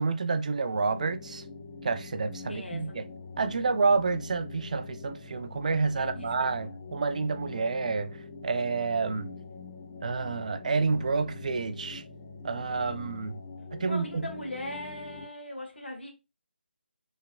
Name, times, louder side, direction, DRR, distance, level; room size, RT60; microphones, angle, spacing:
voice 1, 0.0-1.4 1.8-3.1 3.4-8.1 8.4-9.3 10.0-12.0 12.4-13.4 13.7-14.3, right 4 dB, 40° right, 0.3 m, -29 dB
sound 1, 0.7-15.3, left 4 dB, 20° left, 0.5 m, -44 dB
voice 2, 2.5-2.9 6.0-6.7 13.8-16.1, left 1 dB, 70° left, 1.4 m, -40 dB
4.5 x 3.3 x 2.4 m
figure-of-eight pair, 155°, 6 cm